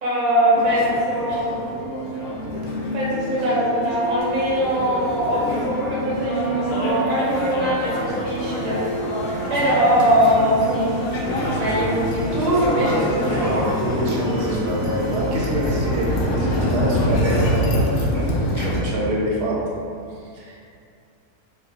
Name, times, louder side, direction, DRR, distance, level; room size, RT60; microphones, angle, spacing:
voice 1, 0.0-1.5 2.9-8.8 9.5-10.9 11.5-13.6, right 1 dB, 35° right, -7 dB, 0.7 m, -21 dB
sound 1, 0.5-18.8, left 1 dB, 70° left, 0.9 m, -26 dB
sound 2, 1.6-16.7, right 3 dB, 70° right, 0.8 m, -34 dB
sound 3, 8.3-15.2, right 1 dB, 40° left, 1.2 m, -36 dB
voice 2, 13.4-19.5 20.3-20.7, right 1 dB, 85° right, -5 dB, 1.3 m, -26 dB
4.1 x 2.3 x 2.7 m, 2.5 s
omnidirectional pair, 1.7 m